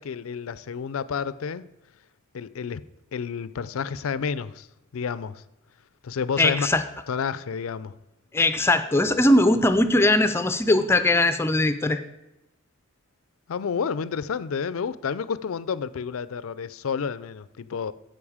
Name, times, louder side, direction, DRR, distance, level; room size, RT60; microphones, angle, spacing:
voice 1, 0.0-1.6 2.3-2.8 3.1-4.7 4.9-5.4 6.0-6.7 7.1-7.9 13.5-17.9, left 6 dB, 80° left, 0.4 m, -30 dB
voice 2, 6.4-6.8 8.3-12.0, left 1 dB, 10° left, 0.4 m, -20 dB
14.5 x 5.3 x 4.9 m
head